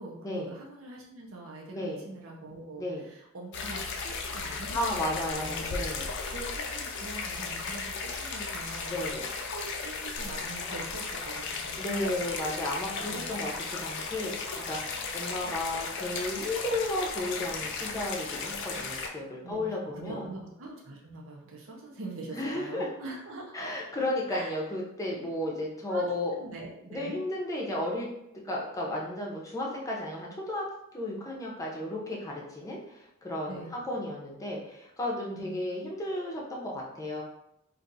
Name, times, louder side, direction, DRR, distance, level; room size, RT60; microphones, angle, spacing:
voice 1, 0.0-4.8 5.1-5.8 6.3-9.0 9.5-12.3 13.0-13.2 19.4-23.5 24.3-24.6 25.9-27.2 33.5-33.9 35.3-35.6, right 2 dB, 65° right, -2 dB, 0.7 m, -43 dB
sound 1, 3.5-19.1, left 4 dB, 55° left, 0.4 m, -35 dB
voice 2, 4.7-6.1 8.9-9.3 11.8-13.5 13.8-20.3 22.3-22.9 23.5-26.3 26.9-28.1 28.4-30.7 30.9-37.2, left 1 dB, 15° left, -3 dB, 0.6 m, -33 dB
2.6 x 2.4 x 4.0 m, 0.80 s
head